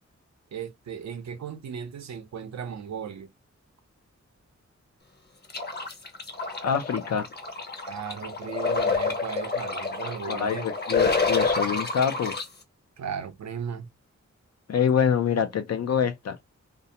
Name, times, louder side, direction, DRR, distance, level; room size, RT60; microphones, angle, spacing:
voice 1, 0.5-3.3 7.9-10.7 13.0-13.9, right 7 dB, 70° right, 0.6 m, -36 dB
sound 1, 5.5-12.4, left 4 dB, 35° left, 0.7 m, -28 dB
voice 2, 6.6-7.3 10.3-12.4 14.7-16.4, left 7 dB, 65° left, 0.4 m, -25 dB
2.5 x 2.0 x 2.7 m
wide cardioid pair, 95°, 29 cm